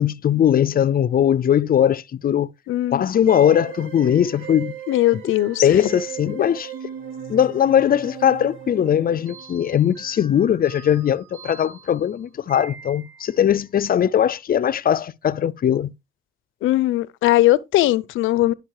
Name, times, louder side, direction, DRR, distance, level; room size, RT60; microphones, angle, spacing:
voice 1, 0.0-2.5 2.9-4.8 5.6-6.7 7.3-15.9, left 9 dB, 50° left, 0.6 m, -20 dB
voice 2, 2.7-3.1 4.9-5.6 16.6-18.5, left 16 dB, 85° left, 0.7 m, -19 dB
sound 1, 3.3-13.4, right 8 dB, 75° right, 3.6 m, -38 dB
11.5 x 5.2 x 4.8 m
cardioid pair, 90°, 20 cm